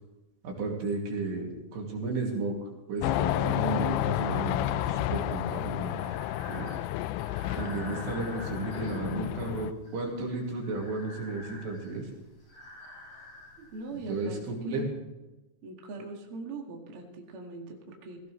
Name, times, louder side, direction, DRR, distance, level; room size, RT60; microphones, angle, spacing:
voice 1, 0.4-2.6 2.9-6.0 6.5-6.7 7.6-12.1 13.9-14.9, right 3 dB, 70° right, -1 dB, 4.6 m, -33 dB
sound 1, 3.0-9.7, left 14 dB, 85° left, 2.9 m, -31 dB
Breathing, 5.6-14.2, left 1 dB, 35° left, 5.0 m, -49 dB
voice 2, 13.6-14.9 15.6-18.2, right 2 dB, 45° right, 0 dB, 2.0 m, -41 dB
17.5 x 16.5 x 3.2 m, 1.1 s
omnidirectional pair, 5.1 m